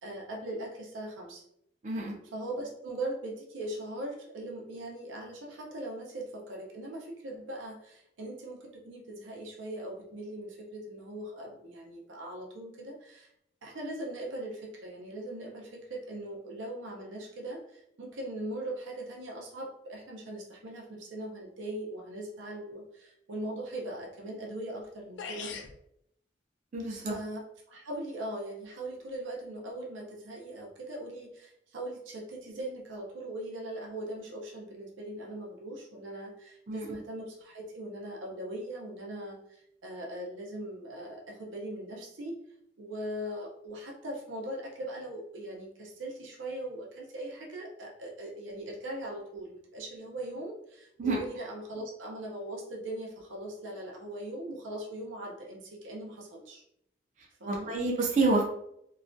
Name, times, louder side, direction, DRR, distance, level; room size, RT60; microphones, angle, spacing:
voice 1, 0.0-1.4 2.3-13.3 13.6-25.5 26.9-42.4 42.8-56.6 57.4-57.7, right 1 dB, 90° right, -1 dB, 0.6 m, -40 dB
voice 2, 1.8-2.2 26.7-27.1 36.7-36.9 51.0-51.2 57.5-58.4, right 3 dB, 40° right, -1 dB, 0.4 m, -28 dB
sound 1, 24.8-24.9 25.2-25.8, left 5 dB, 75° left, 0.3 m, -39 dB
2.2 x 2.1 x 2.5 m, 0.75 s
head